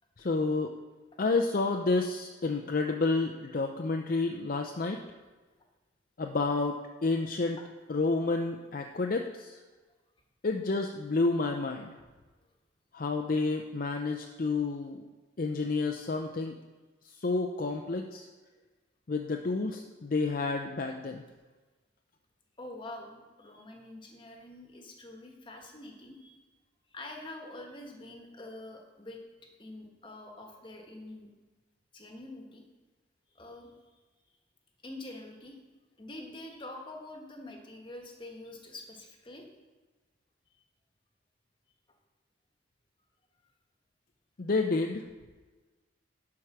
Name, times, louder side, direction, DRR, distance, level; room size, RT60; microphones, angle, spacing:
voice 1, 0.2-0.7 1.2-5.0 6.2-7.6 7.9-9.5 10.4-12.0 12.9-15.1 15.4-16.6 17.2-18.3 19.1-21.2 44.4-45.0, left 3 dB, 50° left, 4 dB, 0.5 m, -30 dB
voice 2, 22.6-26.4 26.9-29.2 29.6-31.3 31.9-32.6 33.3-33.7 34.8-35.6 36.0-39.4, left 2 dB, 25° left, 2 dB, 1.3 m, -45 dB
11.0 x 4.8 x 6.0 m, 1.3 s
head